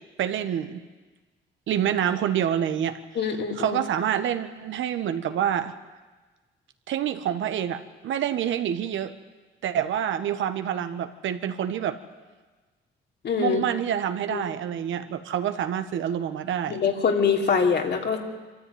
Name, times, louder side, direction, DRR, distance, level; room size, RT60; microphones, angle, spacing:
voice 1, 0.2-0.8 1.7-3.0 3.6-5.7 6.9-9.1 9.6-12.0 13.4-16.8, right 9 dB, 75° right, 9 dB, 1.4 m, -27 dB
voice 2, 3.1-3.8 13.2-13.6 14.3-14.4 16.7-18.2, left 6 dB, 60° left, 3 dB, 3.0 m, -24 dB
24.5 x 13.5 x 9.4 m, 1.3 s
cardioid pair, 90°, 20 cm